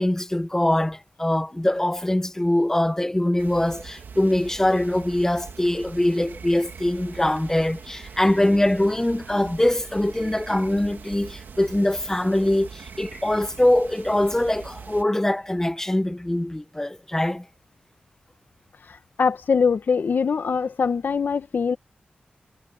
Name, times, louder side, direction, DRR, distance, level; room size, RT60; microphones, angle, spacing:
voice 1, 0.0-17.4, left 1 dB, 15° left, 1.4 m, -23 dB
sound 1, 3.4-15.0, right 6 dB, 85° right, 2.0 m, -42 dB
voice 2, 19.2-21.8, left 5 dB, 70° left, 1.4 m, -22 dB
cardioid pair, 60°, 3 cm